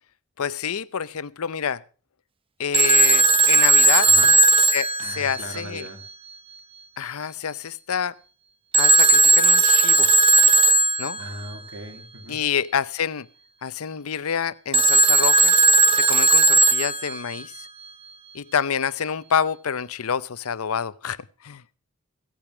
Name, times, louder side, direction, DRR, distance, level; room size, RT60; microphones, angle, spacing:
voice 1, 0.4-1.8 2.6-4.1 4.7-5.9 7.0-8.1 8.8-10.1 11.0-11.2 12.3-13.3 13.6-15.6 15.9-17.7 18.3-21.6, left 7 dB, 80° left, 0.6 m, -27 dB
Telephone, 2.7-5.8 8.7-11.3 14.7-17.4, right 3 dB, 25° right, 0.6 m, -17 dB
voice 2, 5.0-6.0 11.2-12.4, right 1 dB, 70° right, 2.7 m, -38 dB
16.0 x 8.8 x 6.0 m
head